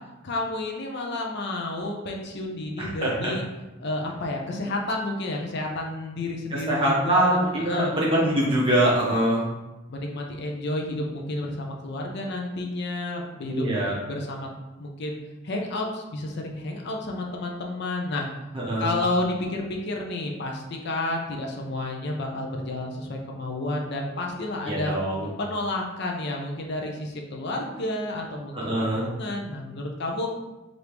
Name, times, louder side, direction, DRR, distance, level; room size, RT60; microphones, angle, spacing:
voice 1, 0.2-3.4 3.8-8.0 9.9-13.7 14.1-14.5 14.8-15.2 15.4-18.3 18.8-24.9 25.4-30.3, left 2 dB, 60° left, 0 dB, 0.6 m, -31 dB
voice 2, 2.8-3.3 6.5-9.4 13.5-13.9 18.5-18.9 24.7-25.3 28.5-29.0, right 1 dB, 25° right, -6 dB, 0.8 m, -23 dB
3.4 x 2.6 x 4.5 m, 1.0 s
head